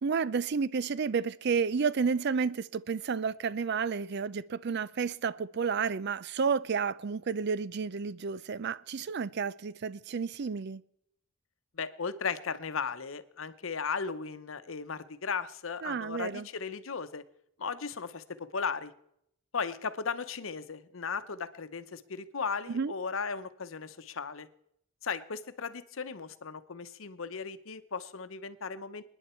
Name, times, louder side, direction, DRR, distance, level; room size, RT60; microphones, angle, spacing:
voice 1, 0.0-10.8 15.8-16.5 22.7-22.9, right 5 dB, 55° right, 0.5 m, -31 dB
voice 2, 11.7-17.2 17.6-18.9 19.5-24.5 25.0-29.0, left 5 dB, 85° left, 0.9 m, -36 dB
28.0 x 9.9 x 4.4 m
head